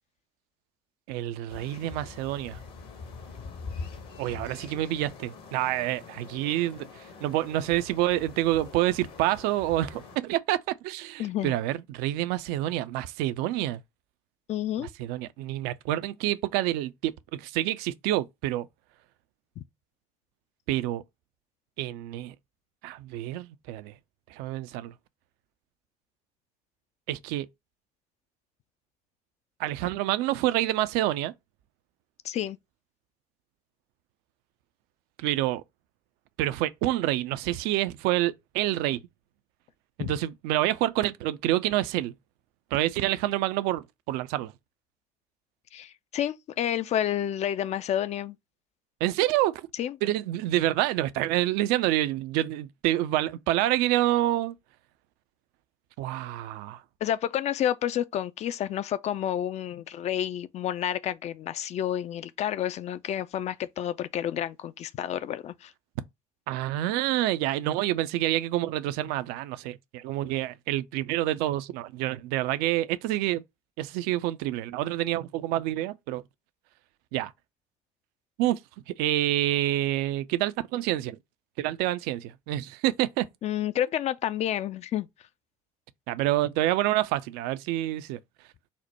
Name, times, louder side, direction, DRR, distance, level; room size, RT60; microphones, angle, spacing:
voice 1, 1.1-2.6 4.2-13.8 15.0-18.7 20.7-21.0 21.8-22.3 22.8-23.9 24.3-24.9 27.1-27.5 29.6-31.3 35.2-35.6 36.4-39.0 40.0-42.1 42.7-44.5 49.0-49.7 50.0-54.5 56.0-56.8 66.5-73.4 73.8-76.2 77.1-77.3 78.4-78.6 78.9-81.2 81.6-83.3 86.1-88.2, right 14 dB, 60° right, 0.4 m, -27 dB
sound 1, 1.5-10.2, left 4 dB, 60° left, 1.1 m, -44 dB
voice 2, 11.2-11.5 14.5-14.9 19.6-19.7 32.2-32.6 40.0-40.1 45.7-48.4 49.8-50.0 57.0-65.7 83.4-85.1, left 11 dB, 40° left, 0.4 m, -30 dB
4.3 x 2.1 x 4.0 m
figure-of-eight pair, 55°, 18 cm